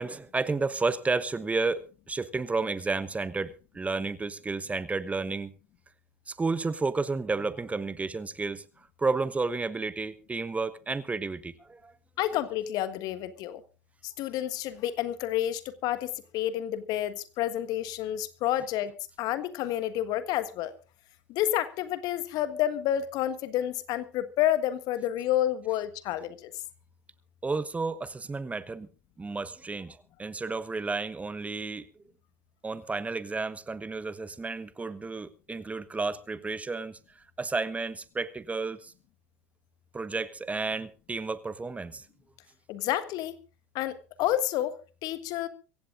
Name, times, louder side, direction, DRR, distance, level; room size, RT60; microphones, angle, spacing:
voice 1, 0.0-5.5 6.3-8.6 9.0-11.9 27.4-28.9 29.2-31.9 32.6-37.0 37.4-38.9 39.9-42.0, right 3 dB, 15° right, 1.1 m, -31 dB
voice 2, 12.2-13.6 14.0-18.9 19.2-20.7 21.3-26.5 42.7-43.4 43.7-45.5, left 12 dB, 55° left, 1.5 m, -29 dB
24.0 x 16.0 x 2.5 m
figure-of-eight pair, 70°, 8 cm